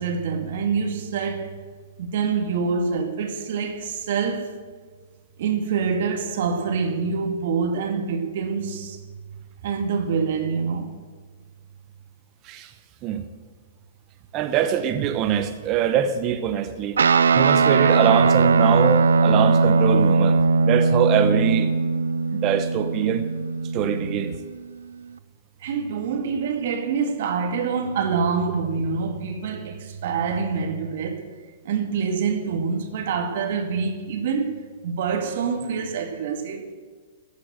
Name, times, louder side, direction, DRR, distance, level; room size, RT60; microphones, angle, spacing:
voice 1, 0.0-1.5 2.0-4.6 5.4-9.0 9.6-10.9 25.6-31.3 31.6-36.7, right 5 dB, 60° right, 2.1 m, -26 dB
voice 2, 14.3-17.0 17.3-21.7 22.3-23.3 23.7-24.4, right 9 dB, 35° right, 1.0 m, -23 dB
Guitar, 17.0-24.6, right 4 dB, 80° right, 0.5 m, -19 dB
14.5 x 8.4 x 7.9 m
hypercardioid pair, 120°, 0 cm